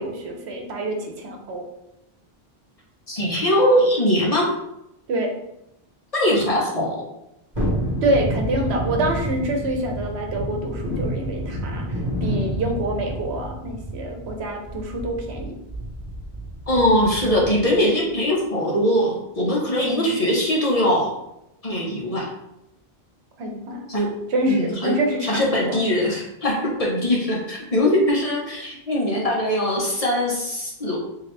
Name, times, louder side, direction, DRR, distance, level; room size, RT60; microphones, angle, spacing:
voice 1, 0.0-1.6 5.1-5.3 8.0-15.6 19.8-20.2 23.4-23.9 24.3-25.8, right 1 dB, 90° right, 3 dB, 1.0 m, -26 dB
voice 2, 3.1-4.5 6.1-7.1 16.7-21.1 21.6-22.3 23.9-24.1 24.5-24.9 25.2-31.0, equal, 35° left, -4 dB, 1.0 m, -21 dB
Thunderstorm, 7.5-17.8 18.1-18.2, right 1 dB, 40° right, 1.4 m, -29 dB
3.7 x 2.9 x 3.2 m, 0.85 s
omnidirectional pair, 1.1 m